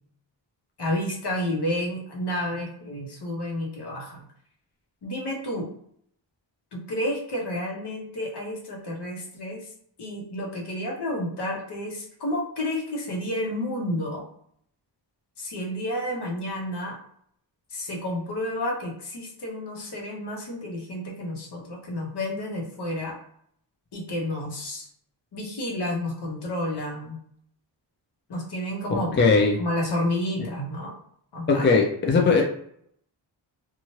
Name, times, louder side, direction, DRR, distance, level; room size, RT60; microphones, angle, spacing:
voice 1, 0.8-4.3 5.0-5.7 6.7-9.7 10.0-14.2 15.4-17.0 17.7-23.2 23.9-24.9 25.3-27.2 28.3-29.3 29.6-30.9 31.3-31.7, left 1 dB, 65° left, -1 dB, 0.9 m, -30 dB
voice 2, 29.2-29.6 31.5-32.4, left 4 dB, 25° left, 1 dB, 0.3 m, -19 dB
3.0 x 2.4 x 2.8 m, 0.67 s
wide cardioid pair, 170°, 45 cm